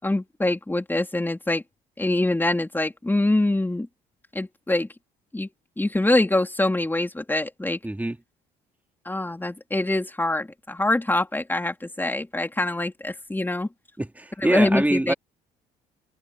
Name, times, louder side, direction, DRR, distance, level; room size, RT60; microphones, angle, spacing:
voice 1, 0.0-1.6 2.0-3.9 4.3-4.9 5.3-5.5 5.8-7.8 9.1-13.7 14.4-15.1, left 2 dB, 10° left, 4.1 m, -24 dB
voice 2, 7.8-8.2 14.0-15.1, right 1 dB, 10° right, 3.6 m, -24 dB
supercardioid pair, 70°, 17 cm